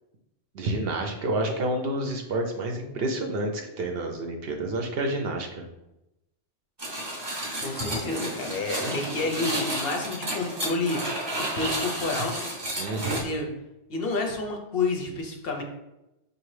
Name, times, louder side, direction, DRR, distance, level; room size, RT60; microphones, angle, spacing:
voice 1, 0.5-5.6 12.8-13.2, right 1 dB, 60° right, 3 dB, 0.7 m, -29 dB
sound 1, 6.8-13.2, right 1 dB, 25° right, 0.6 m, -31 dB
voice 2, 7.6-11.0 11.4-12.5 12.9-13.5 13.9-15.6, left 3 dB, 60° left, 3 dB, 0.7 m, -30 dB
4.8 x 2.6 x 3.1 m, 0.91 s
omnidirectional pair, 1.2 m